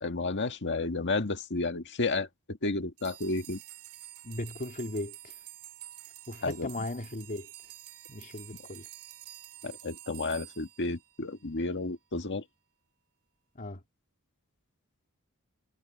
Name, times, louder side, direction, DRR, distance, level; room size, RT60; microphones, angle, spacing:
voice 1, 0.0-3.6 6.4-6.7 9.6-12.4, left 3 dB, 55° left, 1.8 m, -32 dB
sound 1, 3.0-11.5, right 14 dB, 85° right, 2.3 m, -49 dB
voice 2, 4.2-5.3 6.3-7.5 8.1-8.9 13.5-13.8, left 1 dB, 40° left, 2.4 m, -37 dB
head